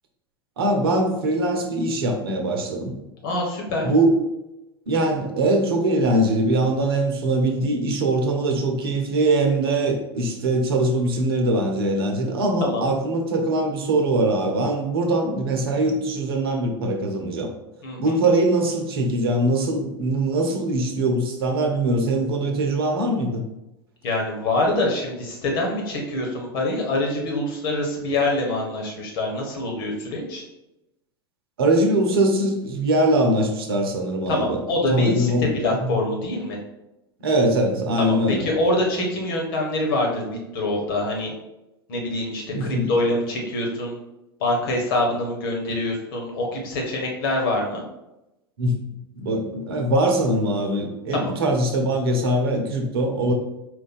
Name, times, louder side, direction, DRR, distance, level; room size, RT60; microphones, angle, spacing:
voice 1, 0.6-2.9 3.8-4.2 4.9-17.5 18.0-23.4 31.6-34.6 34.9-36.0 37.2-38.4 42.5-42.9 48.6-48.8 49.2-53.3, right 1 dB, 65° right, 3 dB, 0.9 m, -22 dB
voice 2, 3.2-3.9 12.6-12.8 17.8-18.1 24.0-30.4 34.3-36.6 38.0-41.3 41.9-44.0 44.4-47.8 51.1-51.3, left 2 dB, 55° left, 0 dB, 1.4 m, -25 dB
4.5 x 2.5 x 4.2 m, 0.93 s
figure-of-eight pair, 85°, 13 cm